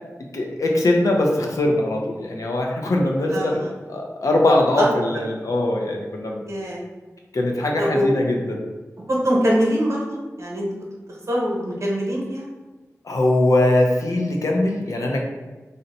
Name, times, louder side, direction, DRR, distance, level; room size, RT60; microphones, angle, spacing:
voice 1, 0.3-3.6 3.9-6.4 7.3-8.6 13.0-15.2, left 1 dB, 80° left, 0 dB, 0.5 m, -21 dB
voice 2, 3.3-3.7 4.8-4.9 6.5-6.8 7.8-8.1 9.1-10.0 10.4-10.6 11.3-12.5, equal, 60° right, -3 dB, 0.8 m, -22 dB
2.6 x 2.1 x 4.0 m, 1.2 s
wide cardioid pair, 55°, 6 cm